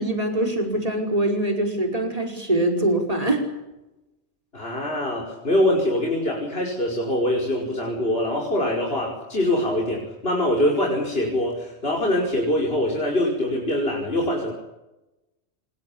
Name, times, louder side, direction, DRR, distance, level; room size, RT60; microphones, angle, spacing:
voice 1, 0.0-3.4, right 1 dB, 35° right, 3 dB, 5.3 m, -23 dB
voice 2, 4.5-14.5, left 1 dB, 60° left, -1 dB, 5.6 m, -23 dB
26.5 x 22.5 x 8.8 m, 0.98 s
omnidirectional pair, 1.1 m